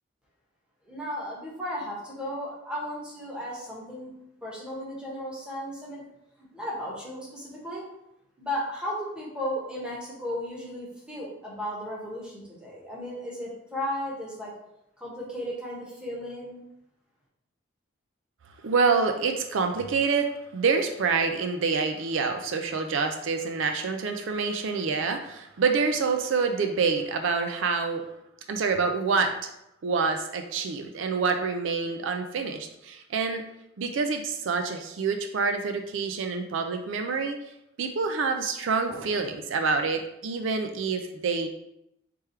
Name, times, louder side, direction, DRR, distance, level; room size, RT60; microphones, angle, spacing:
voice 1, 0.9-4.1 4.4-6.0 6.4-7.8 8.4-14.5 15.0-16.6, equal, 5° right, -5 dB, 1.1 m, -35 dB
voice 2, 18.6-28.1 28.5-29.5 29.8-33.4 33.8-37.4 37.8-41.5, right 4 dB, 75° right, 5 dB, 0.4 m, -27 dB
3.5 x 3.3 x 4.4 m, 0.83 s
head